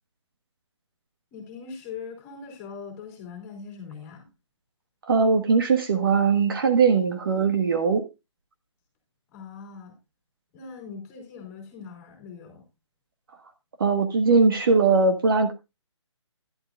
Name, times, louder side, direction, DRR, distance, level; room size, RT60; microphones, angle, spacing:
voice 1, 1.3-4.3 9.3-10.0 10.5-12.7, left 5 dB, 15° left, 2 dB, 3.0 m, -41 dB
voice 2, 5.1-8.0 13.8-15.5, right 4 dB, 45° right, 6 dB, 1.4 m, -20 dB
11.5 x 11.0 x 2.5 m, 0.25 s
hypercardioid pair, 170°, 16 cm